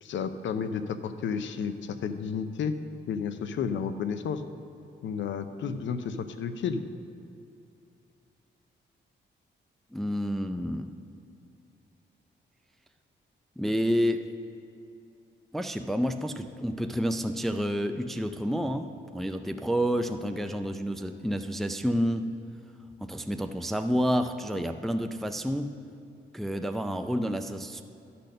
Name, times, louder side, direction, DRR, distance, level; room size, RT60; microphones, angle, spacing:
voice 1, 0.0-2.8 3.1-4.4 5.0-6.8, left 6 dB, 70° left, 10 dB, 0.6 m, -32 dB
voice 2, 9.9-10.9 13.6-14.2 15.5-22.3 23.0-25.7 26.3-27.8, equal, ahead, 7 dB, 0.4 m, -29 dB
12.0 x 4.3 x 6.6 m, 2.6 s
cardioid pair, 80°, 20 cm